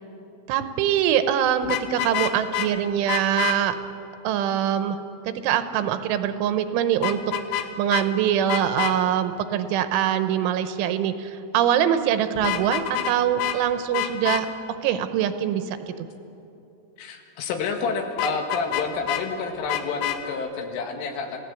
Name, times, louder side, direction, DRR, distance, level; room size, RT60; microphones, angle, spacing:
voice 1, 0.5-3.8 4.3-5.0 5.3-7.2 7.8-14.5 14.8-16.1, right 10 dB, 85° right, 10 dB, 3.4 m, -23 dB
Vehicle horn car horn honking, 1.6-2.7 3.1-3.6 7.0-7.7 7.9-8.0 8.5-8.9 12.4-13.1 13.4-13.6 13.9-14.4 18.2-19.2 19.7-20.2, left 12 dB, 70° left, 2.8 m, -27 dB
voice 2, 17.0-21.4, left 4 dB, 90° left, 4 dB, 4.4 m, -29 dB
29.5 x 16.0 x 8.3 m, 2.8 s
omnidirectional pair, 5.6 m